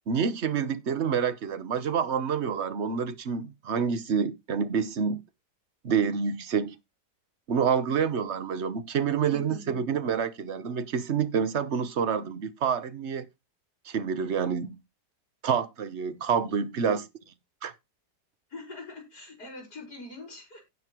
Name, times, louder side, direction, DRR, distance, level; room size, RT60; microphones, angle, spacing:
voice 1, 0.1-5.2 5.8-6.7 7.5-13.3 13.8-14.8 15.4-17.0 17.6-17.7, right 7 dB, 45° right, 1.1 m, -28 dB
voice 2, 9.3-9.9 16.9-17.0 18.5-20.6, left 2 dB, 65° left, 5.4 m, -42 dB
16.5 x 5.6 x 3.0 m
omnidirectional pair, 1.8 m